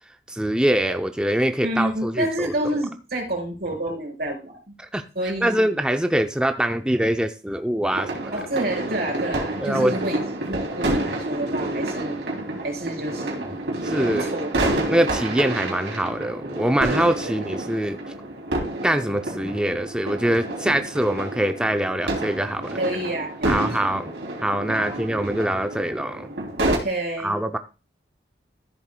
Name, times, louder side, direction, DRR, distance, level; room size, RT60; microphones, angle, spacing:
voice 1, 0.3-2.5 4.8-5.0 5.4-8.3 9.6-10.0 13.8-14.3 14.9-18.0 18.8-22.8 23.4-24.1 24.4-26.3 27.2-27.6, right 1 dB, 5° right, 6 dB, 0.5 m, -23 dB
voice 2, 1.6-4.7 5.2-5.7 8.3-10.2 10.5-12.2 12.6-13.6 14.0-14.5 22.8-24.0 24.7-25.0 26.7-27.4, right 1 dB, 55° right, 0 dB, 4.0 m, -29 dB
sound 1, 7.9-26.8, right 1 dB, 80° right, 3.0 m, -29 dB
14.0 x 7.6 x 2.2 m, 0.32 s
head